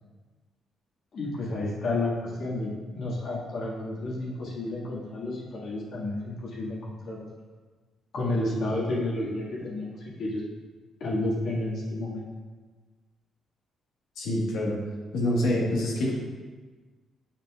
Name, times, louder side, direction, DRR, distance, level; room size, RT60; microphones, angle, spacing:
voice 1, 1.1-7.3 8.1-10.4 11.0-12.3, left 2 dB, 65° left, -6 dB, 1.9 m, -31 dB
voice 2, 14.2-14.7 15.1-16.1, left 1 dB, 85° left, -4 dB, 1.5 m, -26 dB
7.3 x 5.4 x 2.4 m, 1.4 s
cardioid pair, 90°, 0 cm